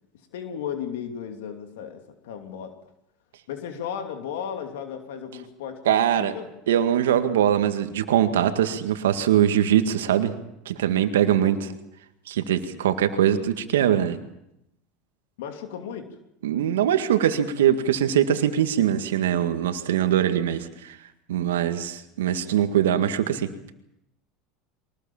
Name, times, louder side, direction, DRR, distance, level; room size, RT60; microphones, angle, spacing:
voice 1, 0.3-2.7 3.5-6.5 11.3-11.8 15.4-16.2, left 8 dB, 75° left, 5 dB, 2.8 m, -35 dB
voice 2, 5.9-6.3 6.7-10.3 10.7-11.6 12.3-14.2 16.4-21.0 21.3-23.5, right 10 dB, 85° right, 8 dB, 1.9 m, -22 dB
23.5 x 19.5 x 7.3 m, 0.83 s
hypercardioid pair, 90°, 0 cm